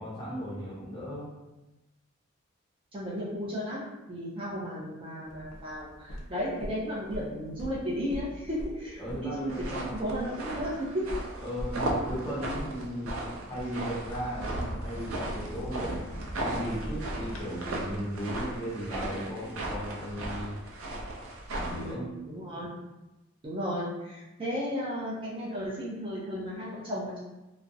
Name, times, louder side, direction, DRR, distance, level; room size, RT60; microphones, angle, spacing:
voice 1, 0.0-1.3 9.0-9.9 11.4-16.1 16.4-20.6 21.5-22.2, equal, 20° left, -7 dB, 0.8 m, -36 dB
voice 2, 2.9-11.1 21.7-22.7 23.4-27.2, equal, 25° right, -6 dB, 0.4 m, -34 dB
sound 1, 5.2-17.4, equal, 80° left, 0.5 m, -42 dB
sound 2, 9.5-21.9, right 1 dB, 85° right, 0.4 m, -36 dB
2.3 x 2.0 x 2.6 m, 1.0 s
head